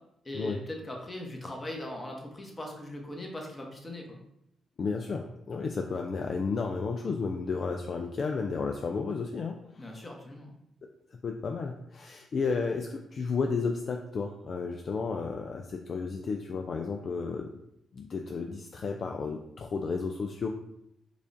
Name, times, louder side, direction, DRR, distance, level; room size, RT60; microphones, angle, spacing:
voice 1, 0.2-4.2 9.8-10.5, left 1 dB, 30° left, 1 dB, 1.0 m, -40 dB
voice 2, 4.8-10.0 10.8-17.5 17.9-20.5, left 4 dB, 55° left, 3 dB, 0.3 m, -33 dB
4.8 x 2.4 x 2.6 m, 0.79 s
hypercardioid pair, 45°, 0 cm